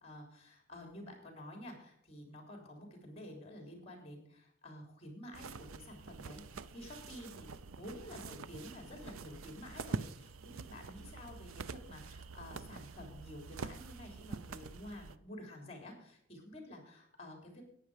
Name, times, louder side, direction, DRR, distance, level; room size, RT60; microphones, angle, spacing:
voice 1, 0.0-17.6, left 1 dB, 30° left, 3 dB, 3.5 m, -50 dB
sound 1, 5.3-15.2, right 4 dB, 80° right, 0.6 m, -46 dB
14.0 x 9.9 x 5.0 m, 0.69 s
head